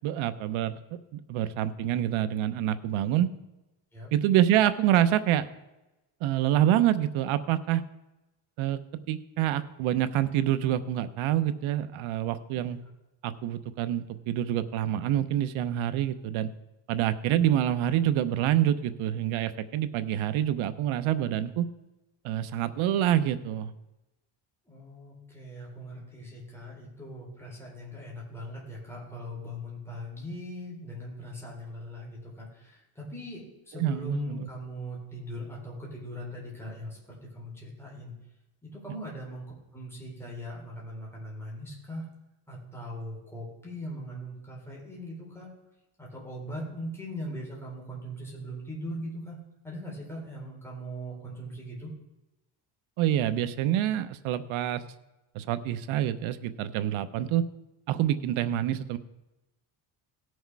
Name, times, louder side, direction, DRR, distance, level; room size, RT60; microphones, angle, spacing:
voice 1, 0.0-0.8 1.1-3.3 4.1-5.4 6.2-7.8 8.6-8.8 9.1-12.8 13.2-16.5 16.9-21.7 22.2-23.7 33.8-34.5 53.0-54.8 55.3-57.5 57.9-59.0, right 12 dB, 80° right, 12 dB, 0.9 m, -26 dB
voice 2, 24.7-37.0 37.3-38.1 38.6-39.4 39.7-42.1 42.5-45.5 46.0-49.4 49.6-51.9, equal, 5° left, -4 dB, 3.8 m, -40 dB
17.5 x 6.4 x 4.7 m, 1.0 s
cardioid pair, 155°, 47 cm